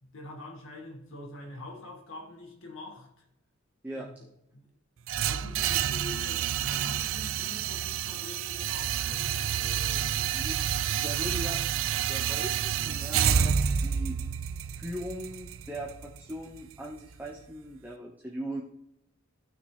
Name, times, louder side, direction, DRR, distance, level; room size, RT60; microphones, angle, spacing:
voice 1, 0.0-3.2 3.9-4.3 4.5-4.7 5.1-10.0, left 2 dB, 75° left, 1.9 m, -45 dB
sound 1, 5.1-17.1, right 8 dB, 75° right, 0.4 m, -29 dB
voice 2, 11.0-11.6 12.1-14.1 14.8-18.6, right 1 dB, 10° right, 1.0 m, -39 dB
15.0 x 6.0 x 3.4 m
head